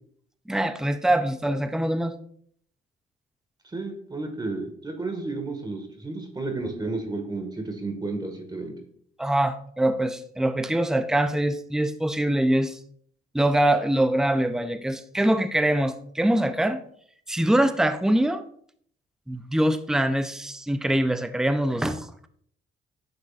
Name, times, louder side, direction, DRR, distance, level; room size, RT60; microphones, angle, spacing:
voice 1, 0.5-2.1 9.2-12.8 13.3-16.8 17.3-18.4 19.3-22.1, right 1 dB, 5° right, 10 dB, 0.6 m, -23 dB
voice 2, 3.7-8.7, right 3 dB, 20° right, 5 dB, 1.7 m, -32 dB
9.9 x 6.6 x 2.5 m, 0.63 s
cardioid pair, 90°, 20 cm